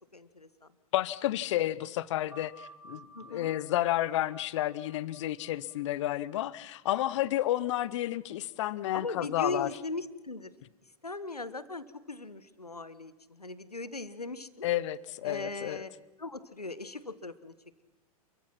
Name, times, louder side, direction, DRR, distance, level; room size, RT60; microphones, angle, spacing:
voice 1, 0.1-0.7 3.1-3.6 8.9-10.5 11.0-14.7 15.2-15.9 16.2-17.5, left 3 dB, 85° left, 14 dB, 1.4 m, -39 dB
voice 2, 0.9-9.7 14.6-15.8, left 14 dB, 50° left, 19 dB, 1.0 m, -31 dB
sound 1, 2.3-7.5, right 2 dB, 80° right, 4.8 m, -55 dB
29.0 x 22.5 x 6.0 m, 1.0 s
figure-of-eight pair, 95°, 19 cm